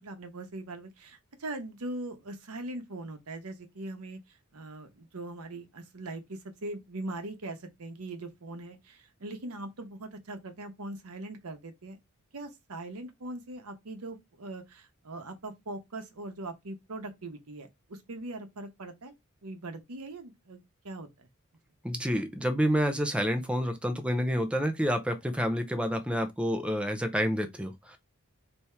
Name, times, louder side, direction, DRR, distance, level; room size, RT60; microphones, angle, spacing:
voice 1, 0.0-12.0 12.3-19.1 19.4-21.3, right 2 dB, 80° right, 0.9 m, -41 dB
voice 2, 21.8-28.0, equal, 5° right, 0.5 m, -29 dB
3.5 x 2.8 x 4.3 m
head